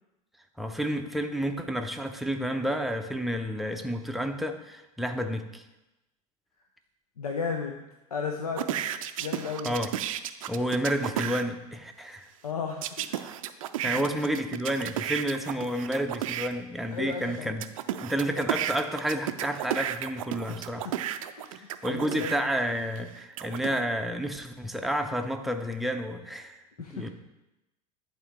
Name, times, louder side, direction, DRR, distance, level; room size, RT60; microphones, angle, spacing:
voice 1, 0.6-5.6 9.6-9.9 10.5-12.3 13.8-17.7 18.0-20.8 21.6-26.6 26.9-27.1, equal, ahead, 5 dB, 0.6 m, -30 dB
voice 2, 7.2-7.8 8.1-8.8 9.2-9.8 12.4-13.3 13.8-14.0 16.9-17.6 20.5-21.0 21.4-22.3 26.8-27.1, left 5 dB, 80° left, 3 dB, 0.6 m, -35 dB
sound 1, 8.6-11.4 12.8-16.5 17.1-22.4 23.0-23.8, right 11 dB, 65° right, 0.4 m, -33 dB
9.9 x 4.3 x 3.5 m, 0.97 s
figure-of-eight pair, 75°, 19 cm